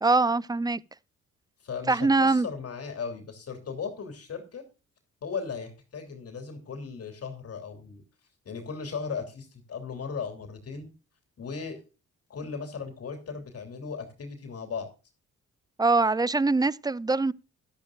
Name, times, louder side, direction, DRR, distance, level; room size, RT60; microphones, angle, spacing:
voice 1, 0.0-0.8 1.9-2.5 15.8-17.3, right 3 dB, 15° right, 0.4 m, -23 dB
voice 2, 1.6-4.6 5.2-8.0 8.4-10.9 11.4-11.8 12.3-14.9, left 5 dB, 50° left, 3.0 m, -37 dB
13.0 x 11.5 x 2.5 m
cardioid pair, 90°, 30 cm